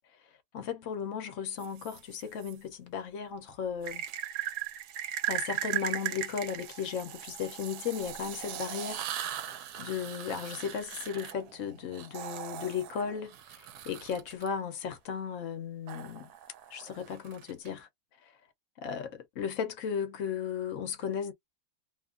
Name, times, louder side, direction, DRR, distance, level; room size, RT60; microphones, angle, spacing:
voice 1, 0.5-4.0 5.3-9.0 9.8-16.3 16.7-17.9 18.8-21.3, left 7 dB, 60° left, 0.9 m, -35 dB
sound 1, 1.6-2.5 3.8-14.5 15.9-17.7, right 11 dB, 75° right, 1.1 m, -38 dB
2.9 x 2.3 x 2.4 m
omnidirectional pair, 1.7 m